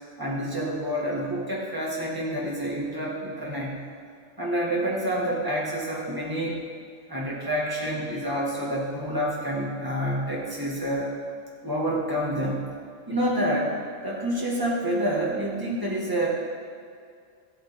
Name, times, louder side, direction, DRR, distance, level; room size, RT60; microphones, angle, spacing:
voice 1, 0.2-3.8 4.4-6.6 7.1-11.1 11.6-12.7 13.1-13.8 14.0-16.3, right 1 dB, 15° right, -4 dB, 1.9 m, -28 dB
13.5 x 8.2 x 3.7 m, 2.3 s
omnidirectional pair, 1.2 m